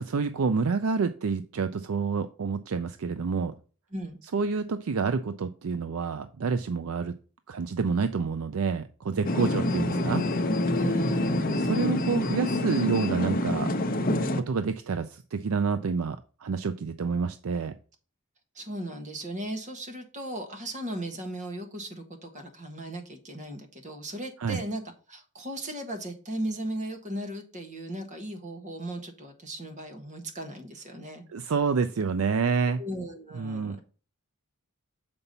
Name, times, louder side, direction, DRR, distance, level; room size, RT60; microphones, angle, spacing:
voice 1, 0.0-3.5 4.3-7.1 7.5-10.3 11.6-13.7 14.3-17.7 24.4-24.6 31.3-32.8 33.3-33.8, right 5 dB, 75° right, 10 dB, 0.5 m, -28 dB
sound 1, 9.2-14.4, left 1 dB, 40° left, 0.8 m, -26 dB
voice 2, 10.7-11.7 18.5-24.8 25.1-31.2 32.8-33.8, right 1 dB, 35° right, 5 dB, 1.4 m, -37 dB
6.9 x 5.3 x 4.1 m, 0.37 s
head